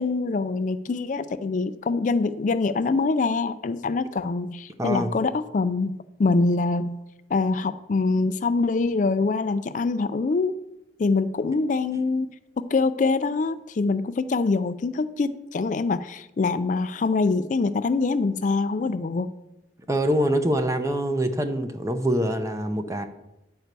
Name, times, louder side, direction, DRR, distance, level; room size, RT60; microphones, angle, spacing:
voice 1, 0.0-7.0 7.3-10.6 11.0-12.3 12.6-19.3, left 3 dB, 45° left, 12 dB, 0.4 m, -24 dB
voice 2, 4.8-5.1 19.9-23.1, equal, 20° right, 8 dB, 0.6 m, -24 dB
9.5 x 4.5 x 6.6 m, 0.90 s
head